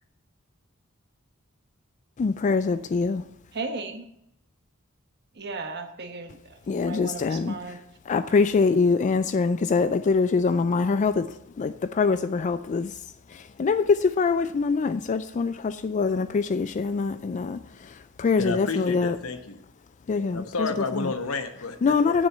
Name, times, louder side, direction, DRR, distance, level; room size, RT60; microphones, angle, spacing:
voice 1, 2.2-3.3 6.7-19.2 20.1-21.1 21.8-22.3, left 4 dB, 35° left, 11 dB, 0.3 m, -24 dB
voice 2, 3.5-4.0 5.4-7.8, right 3 dB, 55° right, 7 dB, 1.1 m, -36 dB
voice 3, 18.4-19.6 20.1-21.8, left 3 dB, 75° left, 7 dB, 1.1 m, -31 dB
7.3 x 6.4 x 7.9 m, 0.81 s
head